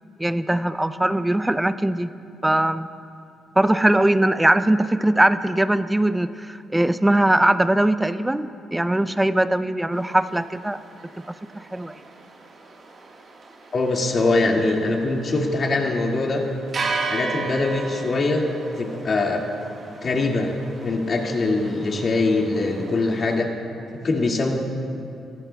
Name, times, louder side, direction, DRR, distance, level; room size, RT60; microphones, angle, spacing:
voice 1, 0.2-2.1 2.4-2.9 3.6-10.8 11.5-11.9, right 1 dB, 10° right, 13 dB, 0.4 m, -20 dB
sound 1, 9.9-23.4, right 4 dB, 50° right, 1.5 m, -36 dB
voice 2, 13.7-16.4 17.1-18.5 18.8-19.4 20.0-20.5 20.8-23.5 24.0-24.6, left 2 dB, 45° left, 0 dB, 2.0 m, -22 dB
22.5 x 14.5 x 2.3 m, 2.5 s
cardioid pair, 90°, 0 cm